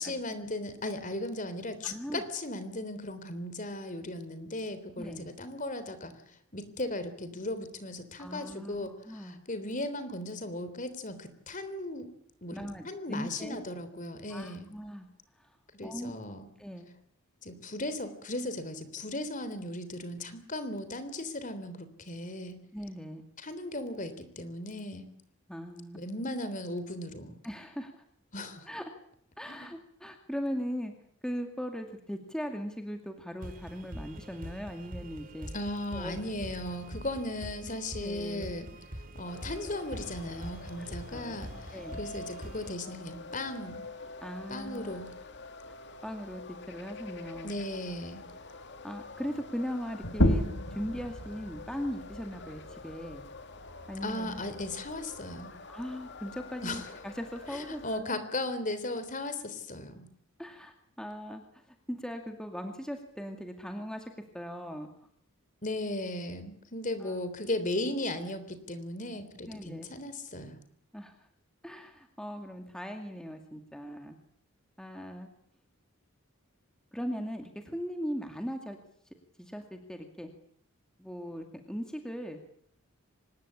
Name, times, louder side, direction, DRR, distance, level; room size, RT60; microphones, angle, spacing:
voice 1, 0.0-6.1 6.5-12.1 12.4-14.7 15.7-16.5 17.4-22.6 23.4-25.1 25.9-27.4 28.3-28.7 29.5-29.7 35.5-38.7 39.2-43.9 44.5-45.1 47.4-48.2 54.0-55.5 56.6-56.9 57.5-60.1 65.6-70.6, left 1 dB, 35° left, 11 dB, 3.5 m, -37 dB
voice 2, 1.8-2.2 5.0-5.3 8.2-9.4 12.5-13.6 14.3-15.1 15.4-15.5 15.8-16.2 16.6-16.9 22.7-23.2 25.5-26.0 27.4-27.9 28.7-28.8 29.4-30.9 31.2-35.5 35.9-36.1 37.9-38.5 40.8-41.4 41.7-42.0 44.2-45.0 45.7-45.8 46.0-46.4 46.7-47.5 48.8-50.4 50.7-53.2 53.9-54.4 55.7-58.2 60.4-64.9 67.0-67.2 69.4-69.9 70.9-71.2 71.6-74.2 74.8-75.3 76.9-78.8 79.4-80.3 81.0-82.4, equal, 5° left, 4 dB, 2.3 m, -39 dB
sound 1, 33.4-42.7, right 1 dB, 40° right, 2.6 m, -44 dB
sound 2, 39.3-58.0, left 3 dB, 50° left, 2.3 m, -47 dB
sound 3, 50.0-55.2, equal, 70° left, 3.5 m, -33 dB
25.0 x 21.0 x 8.7 m, 0.66 s
head